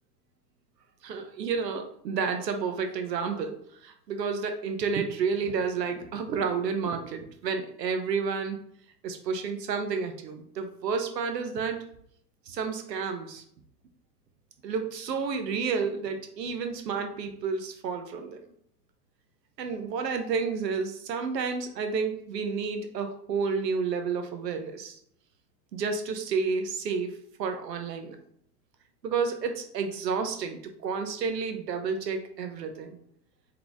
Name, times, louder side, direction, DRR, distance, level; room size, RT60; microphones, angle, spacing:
voice 1, 1.0-8.6 9.0-11.8 12.5-13.4 14.6-18.4 19.6-25.0 25.7-28.2 29.0-33.0, right 5 dB, 90° right, 6 dB, 1.0 m, -30 dB
4.0 x 3.3 x 3.5 m, 0.68 s
hypercardioid pair, 130°, 48 cm